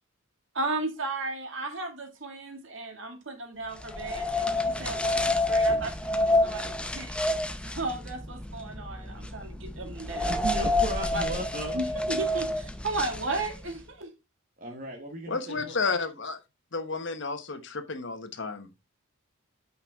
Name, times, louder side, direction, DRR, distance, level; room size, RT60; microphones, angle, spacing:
voice 1, 0.5-7.1 7.6-10.4 11.1-11.5 11.7-14.1, right 2 dB, 65° right, 2.1 m, -35 dB
sound 1, 3.8-13.8, left 2 dB, 5° left, 0.6 m, -29 dB
voice 2, 10.3-11.8 14.6-15.8, right 1 dB, 45° right, 1.4 m, -35 dB
voice 3, 15.3-16.4 16.7-18.8, left 4 dB, 60° left, 1.2 m, -32 dB
8.8 x 5.4 x 3.6 m
head